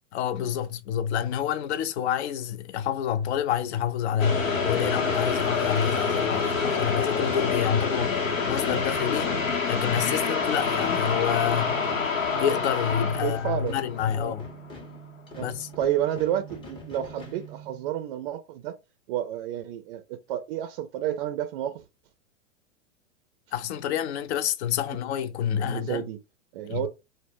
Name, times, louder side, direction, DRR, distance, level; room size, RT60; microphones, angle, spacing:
voice 1, 0.1-9.4 9.7-11.8 12.4-14.5 15.4-15.7 23.5-26.0 26.7-26.9, left 9 dB, 60° left, 0.5 m, -28 dB
sound 1, 4.2-14.4, left 5 dB, 90° left, 0.8 m, -27 dB
sound 2, 8.0-18.1, right 2 dB, 15° left, 0.6 m, -44 dB
voice 2, 13.1-13.8 14.2-14.4 15.4-15.5 15.8-18.8 19.1-21.8 25.5-26.2 26.5-26.9, right 11 dB, 45° right, 0.4 m, -30 dB
2.1 x 2.0 x 3.4 m
hypercardioid pair, 105°, 38 cm